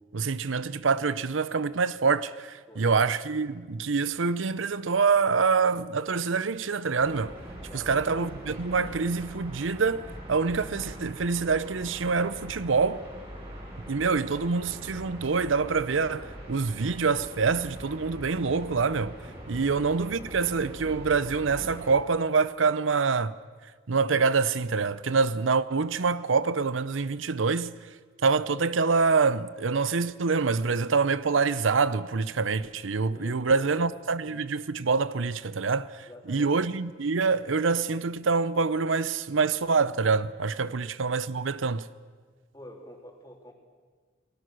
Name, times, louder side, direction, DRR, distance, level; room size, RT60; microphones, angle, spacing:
voice 1, 0.1-7.3 7.7-13.0 13.9-19.1 19.5-23.3 23.9-27.7 28.2-41.9, right 4 dB, 90° right, 0.7 m, -26 dB
voice 2, 2.7-3.0 7.7-8.1 19.6-19.7 33.1-33.8 36.1-36.6 40.7-40.8 42.5-43.5, equal, 20° left, 3.5 m, -46 dB
sound 1, 7.0-21.9, equal, 30° right, 6.7 m, -42 dB
29.5 x 20.0 x 6.4 m
head